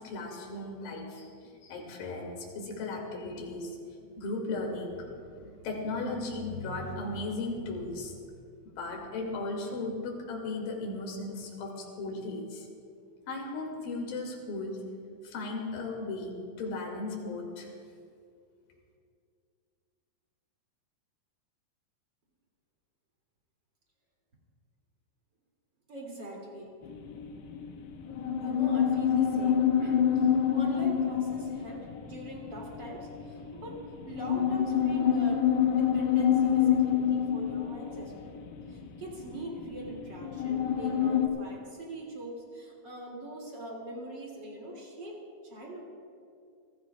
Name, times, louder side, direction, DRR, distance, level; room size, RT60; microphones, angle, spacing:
voice 1, 0.0-8.2 8.7-12.7 13.3-14.8 15.2-17.7, left 2 dB, 65° left, 0 dB, 3.7 m, -36 dB
voice 2, 25.9-26.7 28.4-35.5 35.7-38.4 38.7-45.8, right 1 dB, 35° right, -2 dB, 2.3 m, -42 dB
sound 1, 26.8-41.3, left 8 dB, 90° left, 3.1 m, -28 dB
24.5 x 16.5 x 2.3 m, 2.3 s
omnidirectional pair, 4.6 m